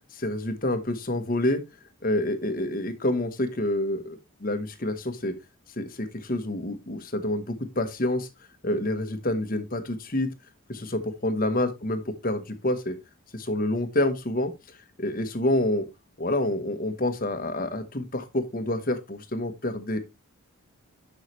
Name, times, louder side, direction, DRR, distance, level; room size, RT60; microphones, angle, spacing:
voice 1, 0.1-1.6 2.0-5.3 5.8-8.3 8.6-10.3 10.7-12.9 13.3-14.5 15.0-15.9 16.2-20.0, left 1 dB, 40° left, 1.1 m, -28 dB
11.0 x 5.7 x 3.1 m
head